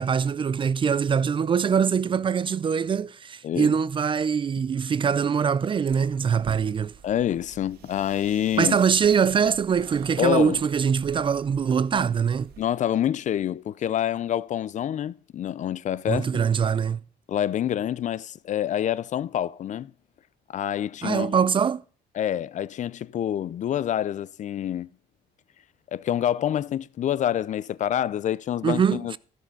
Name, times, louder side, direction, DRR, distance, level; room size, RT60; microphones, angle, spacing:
voice 1, 0.0-6.9 8.6-12.5 16.1-17.0 21.0-21.8 28.6-29.2, right 7 dB, 30° right, 0.4 m, -23 dB
sound 1, 5.9-12.6, right 7 dB, 65° right, 2.0 m, -47 dB
voice 2, 7.0-8.8 10.2-10.6 12.6-16.3 17.3-19.9 20.5-21.4 22.1-24.9 25.9-29.2, left 10 dB, 45° left, 0.5 m, -27 dB
14.0 x 6.4 x 5.3 m
cardioid pair, 110°, 17 cm